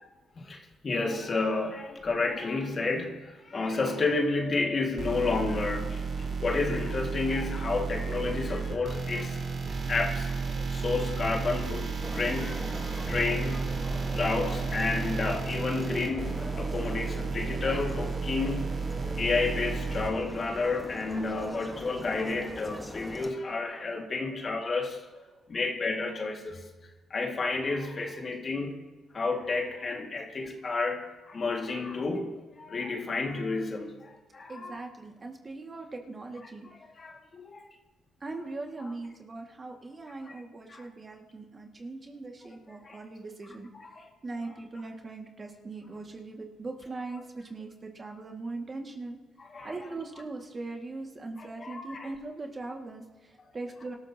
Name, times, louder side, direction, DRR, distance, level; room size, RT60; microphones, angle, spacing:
voice 1, 0.4-6.1 6.4-9.5 9.9-12.7 13.1-18.9 19.2-25.0 25.5-26.6 27.1-28.9 29.1-34.8 37.0-37.7 40.7-40.8 42.8-43.0 43.7-44.0 49.5-49.7 51.6-52.1, left 3 dB, 40° left, 2 dB, 1.9 m, -31 dB
sound 1, 5.0-20.1, right 5 dB, 55° right, 4.0 m, -33 dB
voice 2, 8.7-9.5 16.6-17.5 23.5-24.7 25.1-25.4 34.5-36.7 38.2-43.7 44.2-49.2 49.6-54.0, right 3 dB, 30° right, 2 dB, 1.9 m, -41 dB
sound 2, 12.0-23.3, left 1 dB, 5° left, 1.3 m, -41 dB
25.0 x 13.0 x 2.8 m, 1.2 s
cardioid pair, 90°, 0 cm